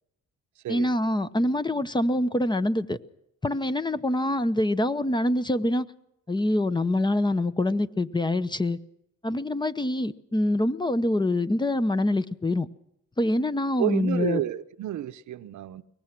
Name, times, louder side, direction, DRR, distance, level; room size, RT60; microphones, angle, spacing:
voice 1, 0.7-3.0 3.4-5.9 6.3-8.8 9.2-12.7 13.2-14.4, left 1 dB, 15° left, 12 dB, 0.8 m, -25 dB
voice 2, 13.8-15.8, right 12 dB, 70° right, 12 dB, 0.9 m, -30 dB
23.0 x 19.0 x 6.0 m, 0.83 s
cardioid pair, 90°, 30 cm